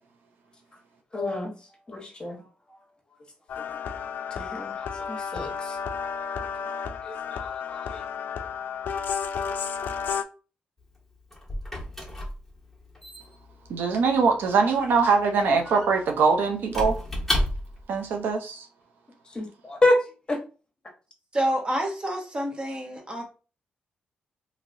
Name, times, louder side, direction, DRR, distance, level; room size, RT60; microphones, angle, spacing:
voice 1, 1.1-1.5 1.9-2.4 4.3-5.8 7.0-8.0 19.3-20.0 20.3-20.4, left 1 dB, 25° left, 1.1 m, -28 dB
sound 1, 3.5-10.2, left 6 dB, 65° left, 0.3 m, -32 dB
Squeak / Wood, 10.8-18.0, equal, 5° left, 1.3 m, -33 dB
voice 2, 13.7-17.0 17.9-18.7, right 5 dB, 75° right, 0.6 m, -22 dB
voice 3, 21.3-23.2, right 1 dB, 30° right, 1.1 m, -28 dB
2.9 x 2.8 x 2.6 m
cardioid pair, 75°, 3 cm